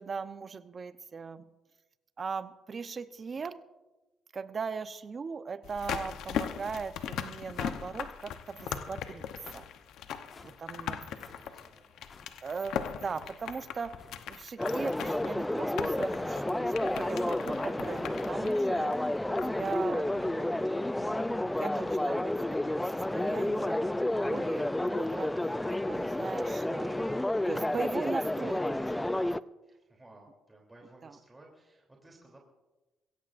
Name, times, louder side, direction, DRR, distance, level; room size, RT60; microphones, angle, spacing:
voice 1, 0.0-1.5 2.2-3.6 4.3-9.3 9.5-9.6 10.4-11.3 12.4-14.0 14.3-22.3 22.7-27.2 27.4-29.2 31.0-31.2, right 5 dB, 40° right, 11 dB, 0.8 m, -39 dB
sound 1, 5.6-19.7 19.9-20.0, left 9 dB, 85° left, 0.9 m, -39 dB
sound 2, 7.5-8.0 8.5-8.9 9.4-9.7 10.3-10.6 11.2-11.4 12.0-12.3 13.0-13.3 13.9-14.4 14.9-15.3 15.9-16.3 16.9-17.2 17.8-18.2, left 4 dB, 40° left, 1.6 m, -54 dB
voice 2, 10.4-12.4 12.8-13.3 13.6-13.7 14.4-14.5 27.1-27.5 29.6-32.4, right 2 dB, 15° right, -1 dB, 3.2 m, -58 dB
sound 3, 14.6-29.4, left 1 dB, 10° left, 0.4 m, -30 dB
22.5 x 16.5 x 2.6 m, 1.1 s
cardioid pair, 90°, 0 cm